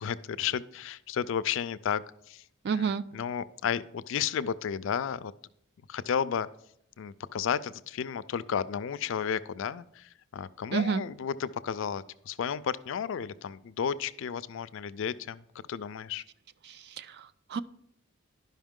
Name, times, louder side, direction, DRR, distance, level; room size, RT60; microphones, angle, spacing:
voice 1, 0.0-2.4 2.8-5.3 5.9-6.5 7.0-15.4 15.7-16.2, left 7 dB, 65° left, 16 dB, 0.4 m, -33 dB
voice 2, 2.6-3.0 10.7-11.0 16.6-17.6, right 6 dB, 50° right, 15 dB, 0.4 m, -30 dB
11.5 x 5.5 x 3.6 m, 0.71 s
head